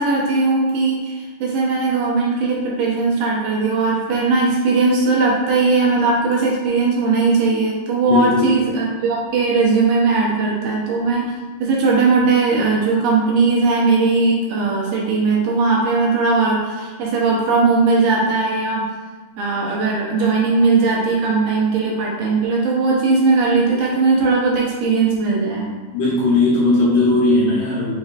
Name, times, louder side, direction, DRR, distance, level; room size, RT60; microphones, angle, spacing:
voice 1, 0.0-11.4 11.6-18.8 19.4-25.7, right 4 dB, 75° right, -4 dB, 2.3 m, -18 dB
voice 2, 8.1-8.5 25.9-27.9, left 2 dB, 70° left, -6 dB, 2.2 m, -17 dB
7.6 x 2.9 x 2.4 m, 1.4 s
omnidirectional pair, 4.4 m